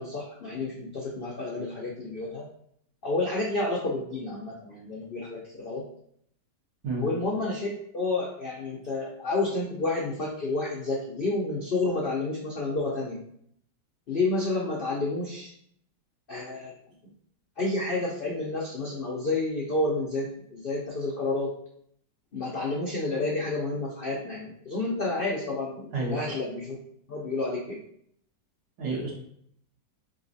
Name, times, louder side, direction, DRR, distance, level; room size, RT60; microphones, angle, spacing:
voice 1, 0.0-2.4 3.0-5.8 6.9-13.2 14.1-15.5 16.3-16.7 17.6-21.5 22.3-26.8 27.1-27.8, left 2 dB, 65° left, -3 dB, 0.5 m, -30 dB
voice 2, 28.8-29.1, right 3 dB, 80° right, -3 dB, 1.9 m, -29 dB
4.0 x 3.9 x 2.6 m, 0.68 s
omnidirectional pair, 1.9 m